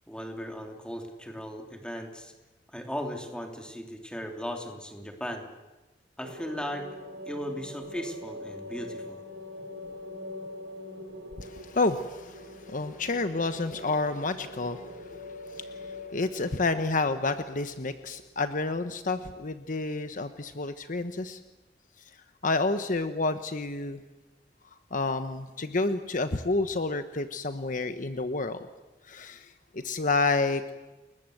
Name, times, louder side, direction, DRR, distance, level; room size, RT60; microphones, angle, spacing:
voice 1, 0.1-2.3 2.7-5.5 6.2-6.9 7.3-9.2, equal, 5° left, 3 dB, 3.2 m, -37 dB
sound 1, 6.2-18.4, left 1 dB, 90° right, 4.4 m, -43 dB
voice 2, 11.4-21.4 22.4-24.0 24.9-28.7 29.1-30.6, left 3 dB, 50° left, 9 dB, 1.1 m, -30 dB
29.5 x 21.0 x 7.9 m, 1.1 s
head